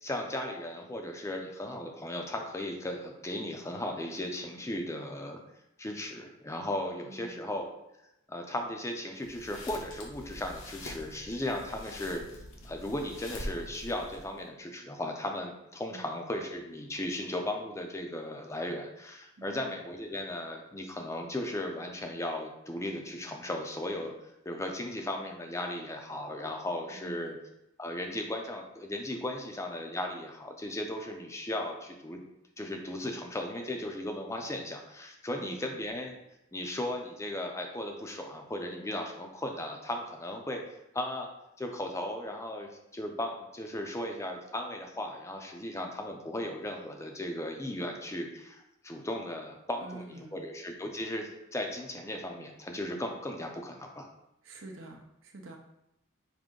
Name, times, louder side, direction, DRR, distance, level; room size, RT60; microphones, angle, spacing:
voice 1, 0.0-5.4 5.8-7.7 8.3-12.2 12.6-24.1 24.5-27.4 27.8-32.2 32.6-36.1 36.5-40.6 40.9-41.3 41.6-54.1, left 1 dB, 15° left, 3 dB, 0.5 m, -36 dB
voice 2, 7.1-7.5 15.9-16.2 19.4-19.8 26.9-27.4 35.4-35.8 49.8-50.4 54.4-55.6, right 2 dB, 65° right, 3 dB, 0.7 m, -47 dB
sound 1, 9.2-14.5, left 1 dB, 75° left, 0.9 m, -44 dB
5.0 x 2.7 x 3.7 m, 0.87 s
head